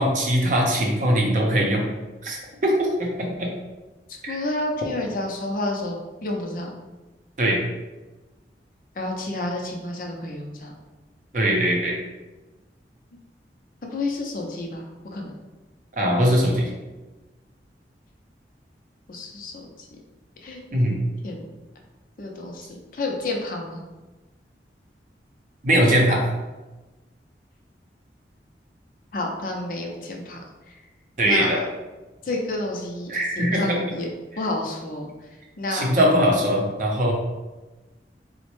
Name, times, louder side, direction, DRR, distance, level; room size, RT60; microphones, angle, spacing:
voice 1, 0.0-1.9 2.2-3.5 4.2-4.4 7.4-7.6 11.3-12.0 16.0-16.7 20.7-21.0 25.6-26.2 31.2-31.6 33.1-33.8 35.7-37.1, equal, 45° right, -1 dB, 0.6 m, -21 dB
voice 2, 4.3-6.7 9.0-10.7 13.8-15.3 19.1-19.7 20.4-20.6 21.2-21.4 22.2-22.7 22.9-23.8 29.1-30.4 31.2-31.6 32.2-34.1 34.4-35.1 35.6-35.9, left 2 dB, 50° left, 1 dB, 0.5 m, -30 dB
3.9 x 2.1 x 3.0 m, 1.1 s
head